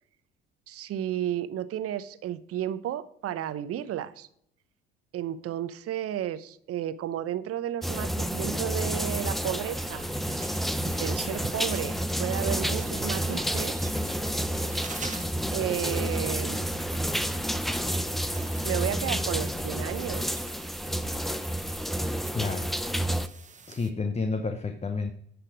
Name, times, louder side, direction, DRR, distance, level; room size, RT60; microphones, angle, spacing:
voice 1, 0.7-4.3 5.1-10.1 11.0-13.9 15.5-16.7 18.6-20.4, right 11 dB, 50° right, 14 dB, 0.8 m, -33 dB
sound 1, 7.8-23.3, equal, ahead, 0.6 m, -30 dB
sound 2, 9.7-23.9, right 5 dB, 25° right, 1.0 m, -46 dB
voice 2, 22.3-22.7 23.7-25.1, left 4 dB, 20° left, 8 dB, 0.9 m, -30 dB
10.5 x 5.7 x 4.9 m, 0.69 s
hypercardioid pair, 55°, 29 cm